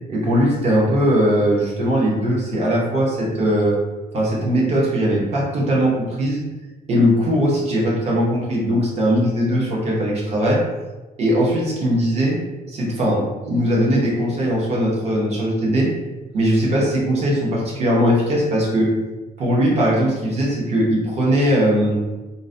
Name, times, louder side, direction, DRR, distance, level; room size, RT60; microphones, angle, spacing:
voice 1, 0.1-3.8 4.1-6.4 6.9-10.6 11.2-12.4 12.7-15.9 16.3-18.9 19.4-21.9, equal, 40° right, -3 dB, 0.7 m, -19 dB
3.7 x 2.1 x 2.6 m, 1.2 s
cardioid pair, 175°, 17 cm